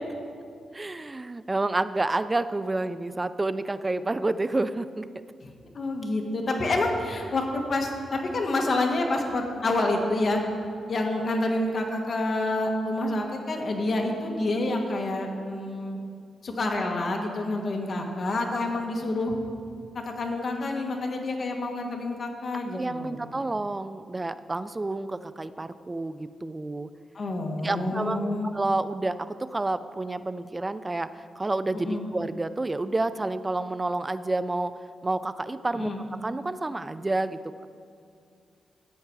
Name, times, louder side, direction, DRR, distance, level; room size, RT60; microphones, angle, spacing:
voice 1, 0.7-5.1 22.7-26.9 27.6-34.7 35.0-35.9 36.2-37.7, right 2 dB, 20° right, 13 dB, 0.4 m, -29 dB
voice 2, 5.7-10.4 10.9-16.0 16.4-19.3 20.2-23.2 27.1-28.5 31.8-32.1 35.7-36.0, left 2 dB, 50° left, 2 dB, 1.7 m, -28 dB
14.0 x 8.6 x 4.7 m, 2.3 s
cardioid pair, 90°, 0 cm